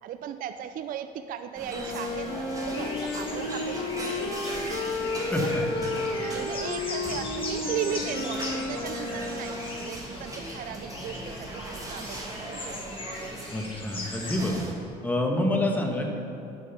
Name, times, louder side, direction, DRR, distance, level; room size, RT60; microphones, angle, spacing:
voice 1, 0.0-5.0 5.4-5.5 6.3-12.7, right 9 dB, 55° right, 9 dB, 0.4 m, -37 dB
sound 1, 1.5-14.7, right 1 dB, 20° right, 1.6 m, -39 dB
Wind instrument woodwind instrument, 1.7-10.1, left 2 dB, 70° left, 1.6 m, -32 dB
sound 2, 2.6-14.4, left 2 dB, 30° left, 2.0 m, -39 dB
voice 2, 5.3-5.9 13.5-14.6 15.0-16.2, left 1 dB, 10° left, 1 dB, 1.2 m, -27 dB
11.0 x 5.4 x 5.8 m, 2.8 s
cardioid pair, 110°, 17 cm